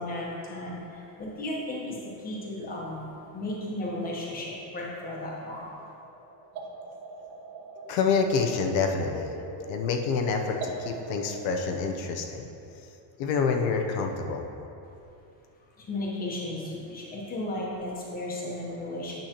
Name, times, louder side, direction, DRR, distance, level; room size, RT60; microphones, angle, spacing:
voice 1, 0.0-3.1 3.3-5.8 15.8-19.2, left 1 dB, 20° left, -4 dB, 1.0 m, -35 dB
sound 1, 4.8-11.5, right 2 dB, 85° right, 1.3 m, -41 dB
voice 2, 7.9-9.3 9.7-12.5 13.2-14.4, left 5 dB, 85° left, 3 dB, 0.8 m, -27 dB
8.9 x 6.4 x 2.9 m, 2.8 s
cardioid pair, 170°, 49 cm